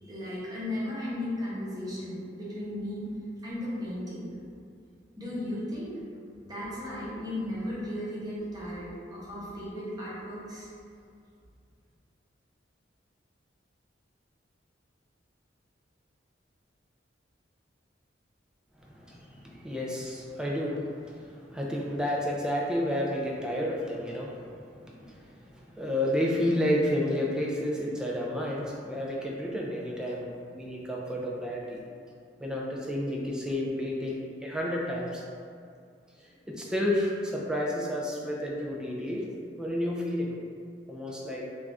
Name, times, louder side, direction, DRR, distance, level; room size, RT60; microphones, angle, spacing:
voice 1, 0.0-3.1 3.4-4.3 5.2-6.2 6.5-10.7, left 1 dB, 20° right, -8 dB, 0.7 m, -35 dB
voice 2, 18.9-31.8 32.4-35.2 36.2-39.3 39.6-40.3 40.9-41.5, left 1 dB, 5° right, -3 dB, 0.3 m, -31 dB
2.5 x 2.3 x 3.3 m, 2.3 s
head